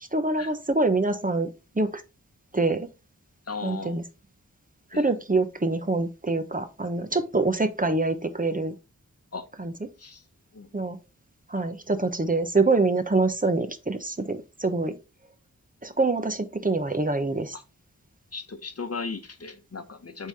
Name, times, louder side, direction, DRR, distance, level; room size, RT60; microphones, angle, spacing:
voice 1, 0.1-2.0 2.5-2.9 3.6-4.0 4.9-8.7 9.6-9.7 10.7-11.0 11.5-15.0 15.8-17.6, right 3 dB, 25° right, 0.9 m, -25 dB
voice 2, 3.5-4.0 4.9-5.1 9.3-9.5 10.0-10.2 10.5-10.7 17.5-17.6 18.3-20.3, left 4 dB, 50° left, 1.0 m, -36 dB
7.9 x 3.8 x 4.1 m
wide cardioid pair, 75°, 32 cm